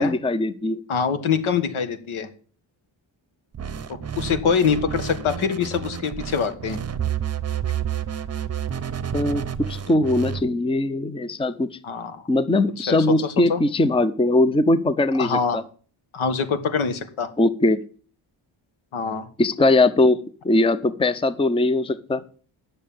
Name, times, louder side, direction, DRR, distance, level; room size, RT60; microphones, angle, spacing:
voice 1, 0.0-0.8 9.1-11.8 12.3-15.6 17.4-17.8 19.4-22.2, left 2 dB, 10° left, 13 dB, 0.6 m, -21 dB
voice 2, 0.9-2.3 3.9-6.8 11.8-12.3 12.9-13.0 13.2-13.6 15.2-15.6 16.1-17.3 18.9-19.3, left 6 dB, 90° left, 9 dB, 1.7 m, -24 dB
sound 1, 3.5-10.4, right 9 dB, 30° right, 0.8 m, -30 dB
9.4 x 6.6 x 8.6 m, 0.42 s
wide cardioid pair, 135°, 47 cm